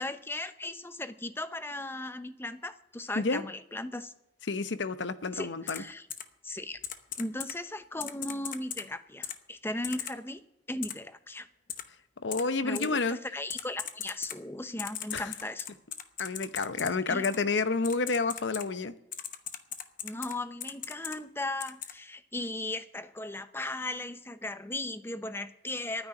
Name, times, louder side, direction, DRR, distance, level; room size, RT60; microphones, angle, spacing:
voice 1, 0.0-4.1 5.3-6.1 6.4-6.8 7.2-10.4 10.7-11.5 12.6-15.7 17.1-17.2 20.0-26.1, left 2 dB, 15° left, 11 dB, 0.8 m, -37 dB
voice 2, 4.5-5.8 12.2-13.2 15.1-15.3 16.2-18.9, left 4 dB, 85° left, 12 dB, 0.8 m, -29 dB
Typing, 5.7-5.8 6.1-6.2 6.8-7.5 8.0-8.8 9.2-9.3 9.8-10.1 10.8-10.9 11.7-11.8 12.3-12.4 12.7-12.9 13.5-14.4 14.8-16.9 17.2-17.4 17.8-18.6 19.1-20.3 20.6-21.2 21.6-21.9, left 10 dB, 50° left, 0.9 m, -37 dB
9.8 x 8.6 x 10.0 m, 0.84 s
head